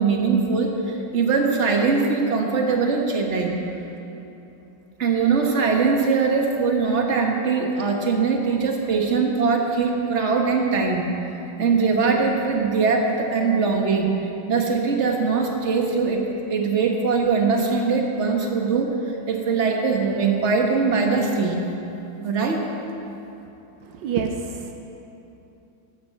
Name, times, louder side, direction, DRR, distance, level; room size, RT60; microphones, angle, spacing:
voice 1, 0.0-3.5 5.0-11.1 11.6-14.1 14.5-16.2 16.5-18.9 19.3-21.6 22.2-22.6, right 4 dB, 40° right, 1 dB, 1.6 m, -21 dB
voice 2, 23.8-24.7, right 6 dB, 80° right, 5 dB, 1.4 m, -27 dB
12.0 x 8.8 x 7.8 m, 2.9 s
omnidirectional pair, 2.0 m